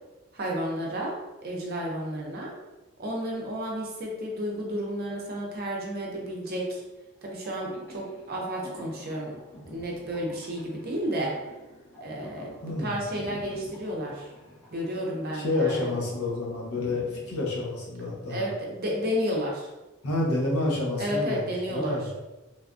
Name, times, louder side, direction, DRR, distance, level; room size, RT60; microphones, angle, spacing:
voice 1, 0.3-1.1 1.4-2.5 3.0-6.8 7.2-9.3 9.7-11.3 12.0-12.5 12.8-14.3 14.7-15.9 18.3-19.7 21.0-22.0, equal, 45° right, -2 dB, 0.6 m, -31 dB
sound 1, 7.4-18.1, equal, 15° left, 0.9 m, -48 dB
voice 2, 12.6-13.0 15.3-18.5 20.0-22.1, left 2 dB, 90° left, -3 dB, 0.8 m, -29 dB
3.3 x 2.3 x 2.5 m, 1.1 s
head